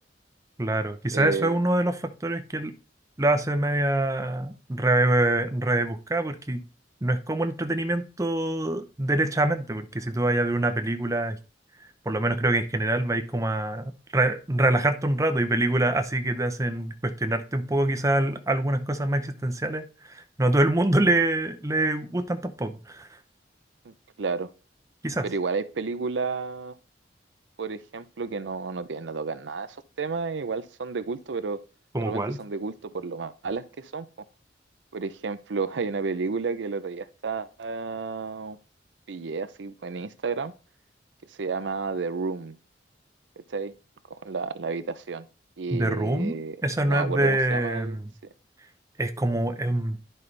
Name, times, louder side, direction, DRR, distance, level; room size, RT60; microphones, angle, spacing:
voice 1, 0.6-2.7 3.2-6.6 7.0-11.4 12.1-23.1 25.0-25.3 31.9-32.4 45.7-48.0 49.0-50.0, right 1 dB, 20° right, 0.7 m, -25 dB
voice 2, 1.1-1.6 23.8-24.5 25.2-26.7 27.6-31.6 32.0-34.1 34.9-38.6 39.1-40.5 41.4-42.6 43.5-43.7 44.1-45.3 45.6-46.6 46.8-48.0, right 4 dB, 85° right, 0.6 m, -31 dB
11.0 x 5.4 x 3.3 m
head